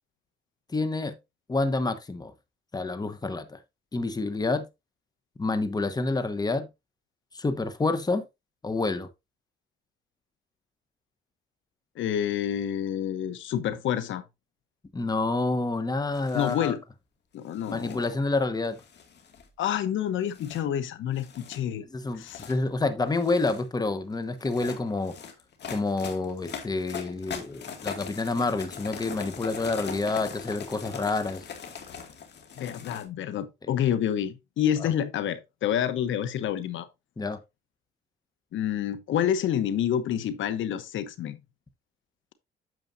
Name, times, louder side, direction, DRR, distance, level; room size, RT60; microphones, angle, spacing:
voice 1, 0.7-1.2 1.5-2.3 2.7-3.6 3.9-4.7 5.4-6.7 7.3-8.2 8.6-9.1 14.9-16.8 17.7-18.8 21.9-25.1 25.7-31.4 34.8-34.9 37.2-37.4, left 3 dB, 20° left, 1.1 m, -28 dB
voice 2, 12.0-14.2 16.3-16.8 17.3-18.0 19.6-21.8 22.2-22.4 32.6-36.9 38.5-41.4, left 10 dB, 75° left, 1.0 m, -28 dB
sound 1, 16.1-16.6 17.5-18.1 18.8-19.5 20.3-20.6 21.2-21.6 22.1-22.6 23.1-23.7 24.4-33.0, left 6 dB, 60° left, 2.2 m, -41 dB
9.2 x 6.9 x 2.7 m
cardioid pair, 90°, 20 cm